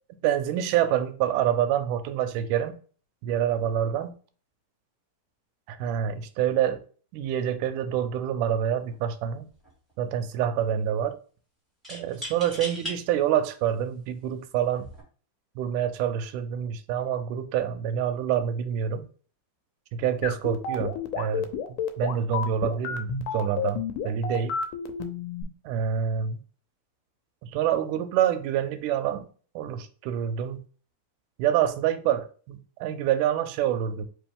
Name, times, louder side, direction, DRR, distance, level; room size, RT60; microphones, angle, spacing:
voice 1, 0.2-2.8 3.2-4.1 5.7-6.8 7.1-9.5 10.0-11.2 11.9-14.9 15.6-19.1 19.9-24.5 25.7-26.4 27.4-29.2 29.6-30.6 31.4-34.1, right 9 dB, 85° right, 2.0 m, -27 dB
sound 1, 8.7-8.9 9.3-9.9 11.8-13.0 13.7-13.8 14.7-15.0, equal, ahead, 1.1 m, -38 dB
sound 2, 20.2-25.4, left 6 dB, 90° left, 2.2 m, -30 dB
4.6 x 3.0 x 3.5 m
omnidirectional pair, 3.7 m